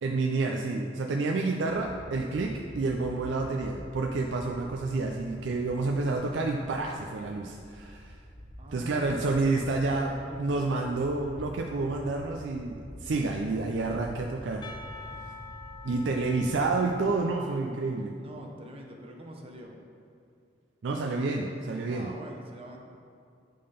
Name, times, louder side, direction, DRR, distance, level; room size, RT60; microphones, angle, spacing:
voice 1, 0.0-8.2 8.7-14.7 15.8-18.1 20.8-22.1, right 3 dB, 75° right, 1 dB, 0.4 m, -29 dB
sound 1, 1.6-16.9, equal, 10° right, 1.1 m, -47 dB
voice 2, 8.6-10.7 18.2-19.8 21.9-22.8, right 1 dB, 30° right, 1 dB, 0.7 m, -44 dB
Percussion, 14.6-18.5, left 4 dB, 25° left, 0.5 m, -47 dB
8.5 x 3.8 x 5.1 m, 2.3 s
head